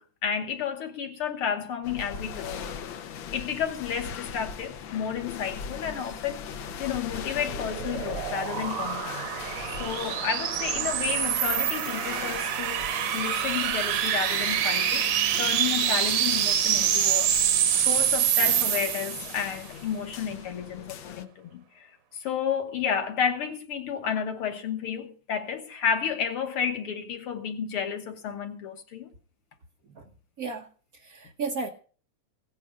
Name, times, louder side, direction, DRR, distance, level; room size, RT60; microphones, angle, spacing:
voice 1, 0.0-6.5 6.8-9.2 9.8-15.0 15.4-21.9 22.2-29.1, left 7 dB, 60° left, 1.7 m, -31 dB
sound 1, 1.8-21.2, left 7 dB, 75° left, 1.1 m, -40 dB
sound 2, 6.9-19.5, right 10 dB, 65° right, 1.6 m, -26 dB
voice 2, 30.9-31.7, right 4 dB, 80° right, 0.8 m, -33 dB
16.5 x 9.7 x 5.0 m
omnidirectional pair, 3.4 m